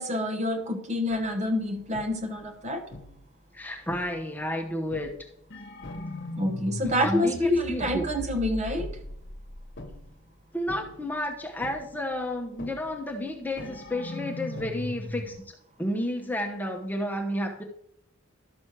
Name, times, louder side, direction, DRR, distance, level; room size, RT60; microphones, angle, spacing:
voice 1, 0.0-2.8 6.4-9.0, left 1 dB, 35° right, 7 dB, 0.9 m, -27 dB
sound 1, 1.1-1.4 1.9-2.5 2.9-3.3 3.9-4.4 4.9-10.2 10.7-11.1 11.6-12.1 12.6-13.1 13.6-15.4, left 1 dB, 55° left, 1.1 m, -39 dB
voice 2, 3.5-5.1 7.0-8.1 10.5-15.4 15.8-17.6, left 1 dB, 10° left, 2 dB, 0.9 m, -31 dB
12.0 x 6.2 x 4.7 m, 0.74 s
head